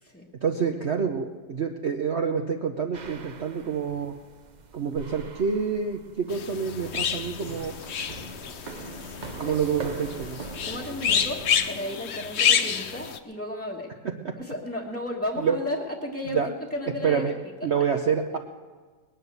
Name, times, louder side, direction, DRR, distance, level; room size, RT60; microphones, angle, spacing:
voice 1, 0.4-4.1 4.7-7.8 9.4-10.4 14.2-14.3 15.4-15.6 16.3-16.5 17.0-17.3 17.6-18.4, right 6 dB, 50° right, 4 dB, 0.8 m, -27 dB
sound 1, 2.9-11.7, right 4 dB, 70° right, 0.4 m, -42 dB
sound 2, 6.3-13.2, left 8 dB, 55° left, 0.7 m, -28 dB
voice 2, 9.2-9.5 10.6-13.9 14.4-16.4 16.7-17.3 17.6-17.9, left 1 dB, 5° left, -5 dB, 1.2 m, -34 dB
20.0 x 10.0 x 6.7 m, 1.4 s
omnidirectional pair, 2.0 m